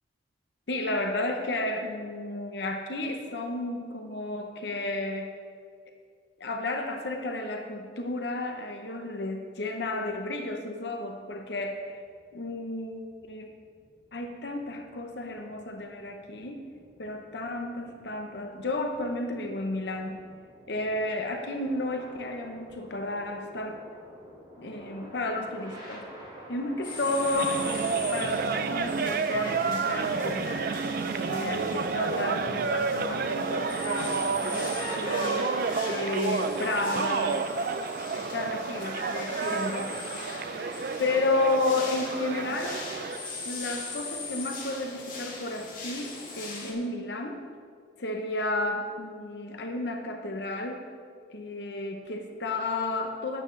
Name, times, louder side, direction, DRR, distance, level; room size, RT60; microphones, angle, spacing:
voice 1, 0.7-5.3 6.4-12.0 12.3-13.5 14.1-16.6 17.0-20.2 20.7-23.8 24.6-26.1 26.5-27.7 28.1-30.7 31.2-35.6 35.9-37.5 38.1-39.9 41.0-42.8 43.4-47.4 48.0-50.9 51.3-53.4, left 2 dB, 65° left, 4 dB, 0.8 m, -32 dB
sound 1, 11.2-27.3, right 1 dB, 25° right, 2.7 m, -51 dB
sound 2, 26.8-46.7, left 3 dB, 45° left, 2.0 m, -40 dB
sound 3, 27.1-43.3, right 4 dB, 50° right, 0.4 m, -30 dB
12.5 x 9.1 x 3.3 m, 2.1 s
head